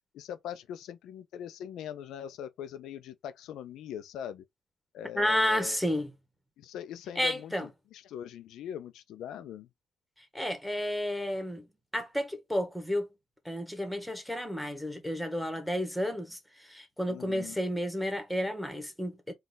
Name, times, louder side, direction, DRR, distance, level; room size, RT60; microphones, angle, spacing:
voice 1, 0.1-4.4 4.9-5.8 6.6-9.7 17.1-17.6, left 9 dB, 85° left, 0.5 m, -41 dB
voice 2, 5.1-6.1 7.2-7.7 10.3-11.6 11.9-13.1 13.4-19.3, equal, ahead, 1.3 m, -31 dB
4.0 x 2.4 x 3.9 m
cardioid pair, 90°, 0 cm